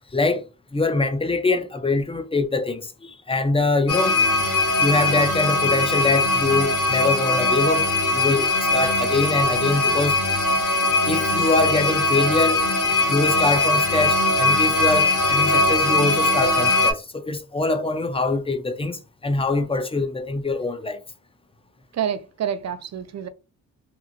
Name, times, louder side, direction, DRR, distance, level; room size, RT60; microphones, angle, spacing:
voice 1, 0.1-4.2 4.8-10.2 11.1-12.7 13.1-21.0, left 3 dB, 15° left, 0.5 m, -24 dB
sound 1, 3.9-16.9, left 2 dB, 55° left, 0.9 m, -20 dB
voice 2, 21.9-23.3, right 8 dB, 50° right, 0.5 m, -28 dB
3.0 x 2.4 x 2.5 m
cardioid pair, 65°, 36 cm